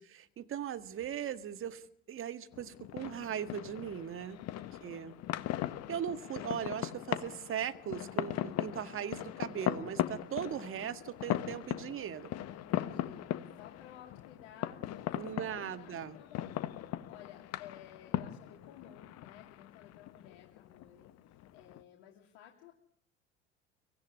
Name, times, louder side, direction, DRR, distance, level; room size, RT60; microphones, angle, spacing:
voice 1, 0.0-4.4 4.8-5.1 5.9-12.3 15.1-16.2, right 9 dB, 40° right, 10 dB, 1.9 m, -39 dB
sound 1, 2.5-21.8, left 13 dB, 45° left, 1.5 m, -39 dB
voice 2, 4.3-4.9 5.5-5.9 12.5-22.7, left 10 dB, 65° left, 0 dB, 3.1 m, -55 dB
24.0 x 17.0 x 9.8 m, 0.66 s
figure-of-eight pair, 65°, 34 cm